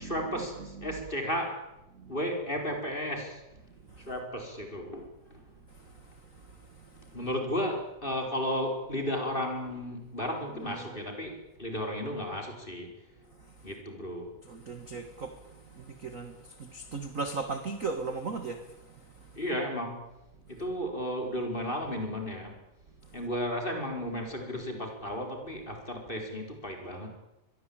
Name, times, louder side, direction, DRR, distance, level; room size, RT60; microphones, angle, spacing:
voice 1, 0.0-1.7 2.1-3.4 4.0-5.4 7.1-13.0 13.6-14.3 19.3-20.0 20.5-22.6 23.1-27.1, equal, 15° left, 3 dB, 5.1 m, -34 dB
voice 2, 10.6-10.9 14.5-15.3 15.8-16.3 16.6-18.6, right 4 dB, 40° right, 7 dB, 1.2 m, -36 dB
25.0 x 22.0 x 9.0 m, 0.93 s
omnidirectional pair, 4.0 m